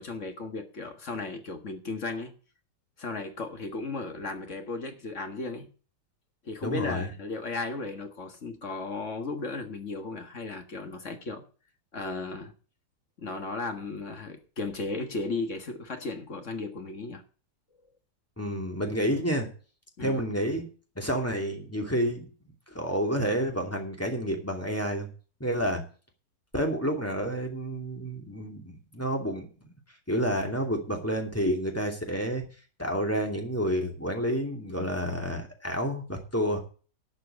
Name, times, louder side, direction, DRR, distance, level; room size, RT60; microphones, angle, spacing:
voice 1, 0.0-2.3 3.0-5.7 6.4-11.4 11.9-12.5 13.2-17.2 20.0-20.2, left 3 dB, 45° left, 1.8 m, -35 dB
voice 2, 6.6-7.1 18.4-19.5 20.0-20.7 21.0-22.2 22.7-25.1 25.4-25.8 26.5-29.5 30.1-32.4 32.8-36.6, equal, 10° left, 2.5 m, -29 dB
12.0 x 6.4 x 7.8 m
omnidirectional pair, 1.9 m